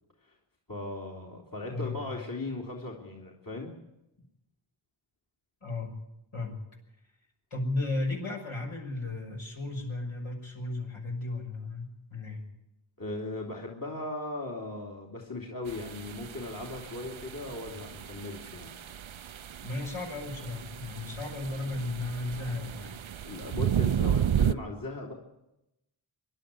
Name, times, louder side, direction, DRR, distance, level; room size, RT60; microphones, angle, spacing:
voice 1, 0.7-3.7 13.0-18.7 23.2-25.1, left 2 dB, 45° left, -1 dB, 3.0 m, -38 dB
voice 2, 1.7-2.1 5.6-5.9 6.3-6.6 7.5-12.4 19.6-23.0, left 2 dB, 80° left, 0 dB, 6.2 m, -35 dB
sound 1, 15.7-24.5, right 9 dB, 75° right, 0.7 m, -33 dB
25.5 x 11.5 x 9.7 m, 0.89 s
wide cardioid pair, 65°, 48 cm